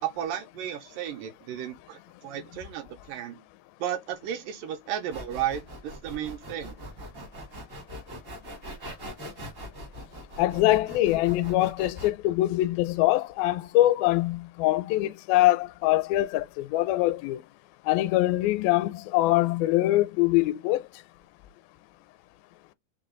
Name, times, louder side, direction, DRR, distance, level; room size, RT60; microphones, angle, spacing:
voice 1, 0.0-3.4 3.8-6.8, right 10 dB, 80° right, 2.2 m, -34 dB
sound 1, 5.1-12.1, equal, 55° right, 0.8 m, -42 dB
voice 2, 10.4-17.4 17.9-20.8, left 16 dB, 85° left, 2.3 m, -23 dB
5.6 x 2.2 x 3.7 m
omnidirectional pair, 4.2 m